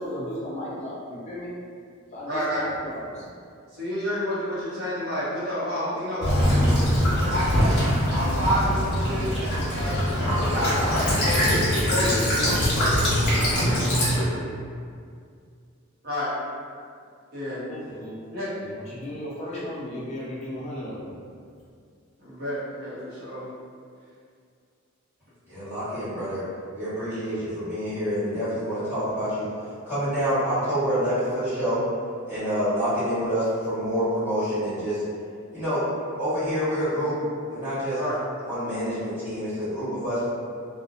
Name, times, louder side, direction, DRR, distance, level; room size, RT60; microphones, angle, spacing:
voice 1, 0.0-1.5 2.1-3.3 17.5-18.2 18.6-21.1, equal, 30° left, -7 dB, 0.3 m, -35 dB
voice 2, 2.3-2.7 3.7-7.7 8.1-10.0 10.5-13.7 16.0-16.3 17.3-17.6 18.3-18.5 19.5-19.6 22.3-23.5 37.9-38.2, equal, 50° right, -10 dB, 0.7 m, -30 dB
Child speech kid speaking / Bird vocalization bird call bird song / Stream, 6.2-14.2, equal, 55° left, 1.0 m, -22 dB
voice 3, 25.5-26.4 26.7-29.5 29.9-31.8 32.2-35.0 35.5-35.9 36.2-37.1 37.5-38.0 38.4-40.3, equal, 10° right, -15 dB, 1.2 m, -27 dB
2.6 x 2.0 x 2.4 m, 2.3 s
head